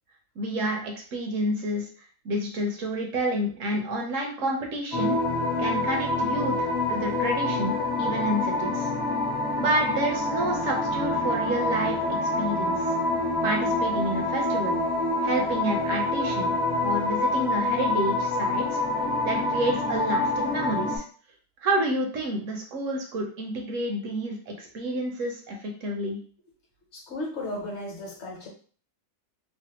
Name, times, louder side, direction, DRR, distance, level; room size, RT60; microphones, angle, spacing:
voice 1, 0.4-1.9 2.2-5.2 5.6-8.9 9.6-12.8 13.4-14.8 15.2-16.5 16.8-18.8 19.2-21.0 21.6-26.2, right 1 dB, 65° right, 1 dB, 1.1 m, -29 dB
sound 1, 4.9-21.0, left 2 dB, 40° left, 0.8 m, -26 dB
voice 2, 26.9-28.5, left 1 dB, 55° left, -1 dB, 1.1 m, -35 dB
3.3 x 2.1 x 2.9 m, 0.42 s
omnidirectional pair, 1.5 m